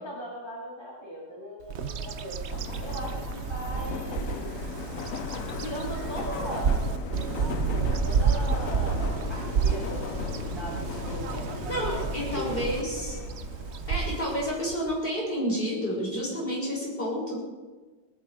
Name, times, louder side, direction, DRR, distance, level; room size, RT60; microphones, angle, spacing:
voice 1, 0.0-2.4 2.8-4.4 5.6-6.7 7.2-7.3 8.0-10.0 10.6-12.7, equal, 15° right, -4 dB, 2.3 m, -38 dB
Bird vocalization bird call bird song, 1.7-15.0, right 6 dB, 55° right, 0.8 m, -30 dB
Subway metro underground, 2.5-14.5, left 9 dB, 60° left, 0.9 m, -38 dB
voice 2, 11.7-13.2 13.9-17.4, equal, 30° left, -4 dB, 6.0 m, -30 dB
19.0 x 14.0 x 4.8 m, 1.3 s
omnidirectional pair, 1.9 m